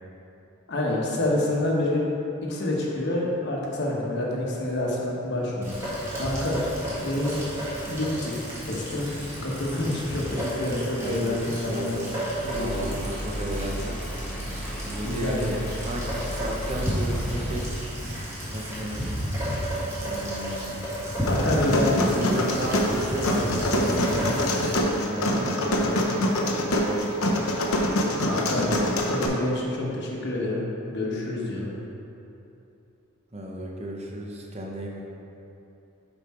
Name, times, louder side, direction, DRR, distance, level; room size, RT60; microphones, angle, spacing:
voice 1, 0.7-2.0 2.4-5.8 6.1-6.6 7.0-7.3 7.9-8.3 8.6-9.1 9.4-11.9 12.4-12.9 15.0-15.5 21.2-22.4 28.2-28.7 29.1-31.7, left 1 dB, 50° left, -3 dB, 1.2 m, -27 dB
Rain, 5.6-24.8, equal, 10° right, 1.7 m, -32 dB
voice 2, 10.9-12.2 12.6-14.0 14.8-17.7 18.5-19.2 20.0-21.0 22.1-27.4 33.3-35.0, right 1 dB, 30° right, -1 dB, 0.8 m, -34 dB
sound 1, 12.4-17.7, equal, 5° left, 0.8 m, -34 dB
sound 2, 21.3-29.3, left 1 dB, 80° left, 0.8 m, -25 dB
7.1 x 5.3 x 4.4 m, 2.8 s
head